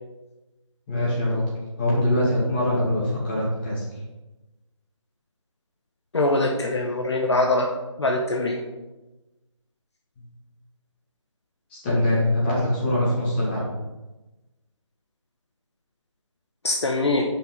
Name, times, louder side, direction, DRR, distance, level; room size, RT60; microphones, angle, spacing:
voice 1, 0.9-1.4 1.8-3.8 11.7-13.6, left 1 dB, 20° left, -7 dB, 2.3 m, -23 dB
voice 2, 6.1-7.7 8.0-8.6 16.6-17.2, left 2 dB, 60° left, 1 dB, 0.9 m, -23 dB
5.7 x 5.5 x 5.3 m, 1.1 s
figure-of-eight pair, 150°, 16 cm